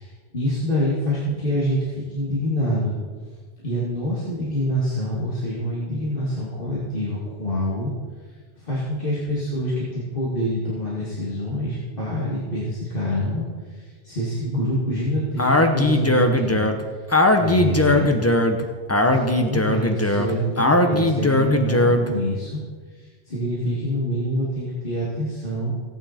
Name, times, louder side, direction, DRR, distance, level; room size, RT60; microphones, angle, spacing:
voice 1, 0.0-3.0 3.3-3.4 3.6-7.9 8.5-16.6 17.4-18.2 19.1-22.6 22.9-25.7, equal, 50° left, -7 dB, 2.6 m, -26 dB
Speech, 15.4-22.1, left 1 dB, 15° left, 0.8 m, -19 dB
16.5 x 9.1 x 4.3 m, 1.5 s
omnidirectional pair, 1.2 m